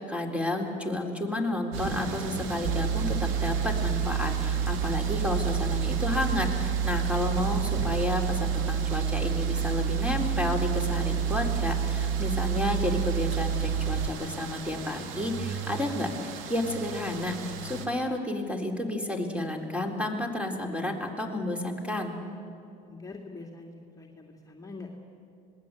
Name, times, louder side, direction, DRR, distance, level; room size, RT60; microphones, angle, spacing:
voice 1, 0.0-22.2, left 1 dB, 5° right, 4 dB, 3.8 m, -31 dB
sound 1, 1.7-17.9, right 5 dB, 70° right, 2.7 m, -38 dB
sound 2, 2.6-14.1, right 8 dB, 50° right, 1.3 m, -28 dB
voice 2, 22.9-25.0, left 3 dB, 15° left, -1 dB, 2.6 m, -44 dB
26.5 x 19.5 x 8.3 m, 2.6 s
hypercardioid pair, 75°, 21 cm